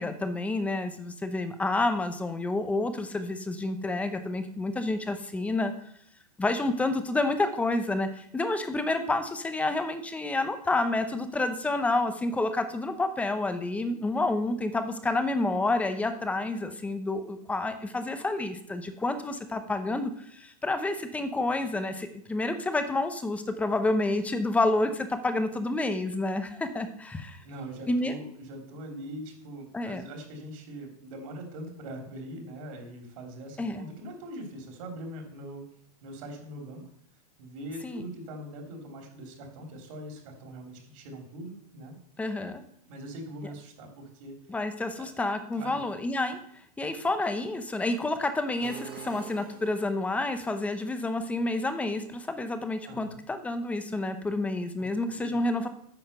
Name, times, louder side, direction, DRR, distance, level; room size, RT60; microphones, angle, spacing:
voice 1, 0.0-5.7 6.4-27.4 27.9-28.1 29.7-30.0 33.6-33.8 37.8-38.0 42.2-42.6 44.5-46.4 46.8-55.7, left 2 dB, 5° left, 9 dB, 0.8 m, -29 dB
voice 2, 27.4-35.6 36.0-36.8 37.1-41.9 42.8-44.6 45.0-45.1 45.5-45.8 52.8-53.2 54.8-54.9 55.1-55.4, right 1 dB, 55° right, 3 dB, 3.3 m, -42 dB
sound 1, 48.6-50.2, right 8 dB, 25° right, 1.2 m, -44 dB
9.0 x 5.7 x 6.8 m, 0.68 s
hypercardioid pair, 145°, 20 cm